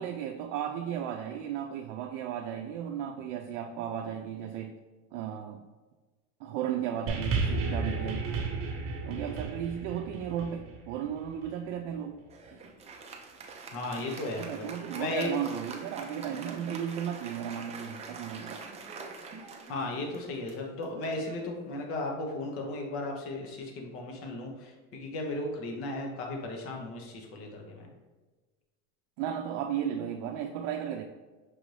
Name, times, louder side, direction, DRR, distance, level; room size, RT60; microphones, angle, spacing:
voice 1, 0.0-4.7 5.1-5.6 6.4-8.3 9.0-12.2 14.0-14.1 14.4-18.6 29.2-31.0, right 9 dB, 85° right, 4 dB, 0.5 m, -35 dB
sound 1, 7.1-11.6 12.4-12.5, right 3 dB, 40° right, 0.9 m, -33 dB
Applause, 12.3-22.1, right 4 dB, 20° right, 0.5 m, -45 dB
voice 2, 13.7-14.7 14.9-15.3 19.7-27.9, left 2 dB, 40° left, 1 dB, 0.9 m, -35 dB
6.1 x 2.6 x 3.1 m, 1.3 s
supercardioid pair, 140°, 36 cm